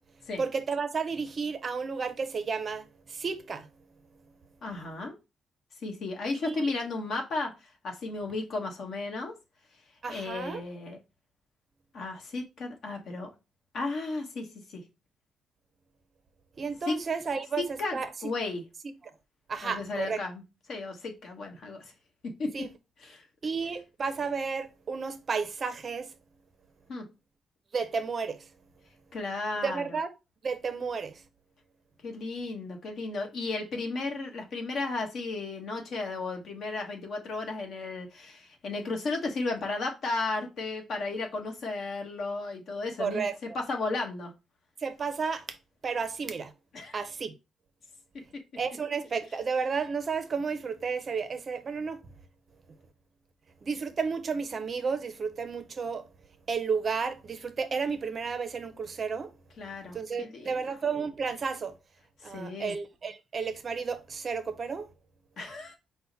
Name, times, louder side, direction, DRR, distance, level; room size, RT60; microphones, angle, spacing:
voice 1, 0.4-3.7 6.4-6.7 10.0-10.6 16.6-18.1 19.5-20.2 22.5-22.7 23.4-26.1 27.7-28.5 29.6-30.1 30.4-31.2 43.0-43.3 44.8-45.6 45.8-46.5 46.9-47.3 48.6-52.0 53.6-56.1 56.5-59.3 59.9-61.7 62.2-64.9, right 5 dB, 35° right, 0.5 m, -32 dB
voice 2, 4.6-5.1 5.8-9.3 10.1-11.0 11.9-13.3 13.7-14.8 16.9-17.0 17.6-18.6 19.6-20.4 20.7-21.9 22.2-22.5 23.0-23.2 26.9-27.0 29.1-29.9 32.0-44.3 46.7-47.0 59.6-60.6 62.2-62.7 65.4-65.8, left 3 dB, 55° left, 1.1 m, -34 dB
5.6 x 2.1 x 3.9 m
cardioid pair, 150°, 0 cm